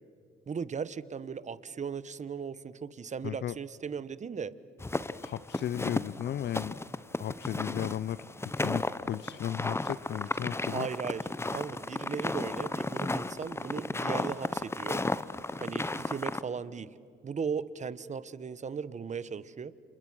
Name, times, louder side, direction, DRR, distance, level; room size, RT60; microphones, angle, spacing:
voice 1, 0.5-4.5 10.7-11.2 11.5-15.0 15.6-16.9 17.2-19.7, right 6 dB, 35° right, 17 dB, 1.0 m, -37 dB
voice 2, 3.2-3.6 5.2-6.7 7.2-10.9, left 11 dB, 60° left, 17 dB, 0.6 m, -35 dB
sound 1, 4.8-16.4, left 2 dB, 15° left, 0.8 m, -34 dB
29.5 x 27.5 x 6.3 m, 2.4 s
cardioid pair, 90°, 20 cm